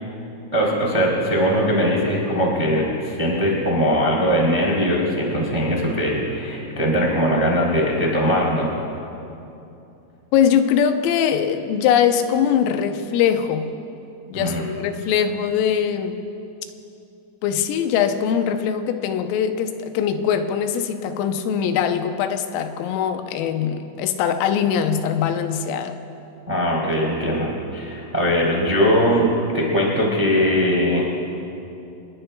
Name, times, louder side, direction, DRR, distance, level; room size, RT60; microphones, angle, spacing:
voice 1, 0.5-8.7 14.3-14.6 26.5-29.2 29.5-31.0, equal, 20° right, -3 dB, 1.1 m, -20 dB
voice 2, 10.3-13.7 14.3-16.3 17.4-26.0, left 8 dB, 85° left, 7 dB, 3.4 m, -22 dB
27.5 x 20.5 x 2.2 m, 2.8 s
omnidirectional pair, 5.8 m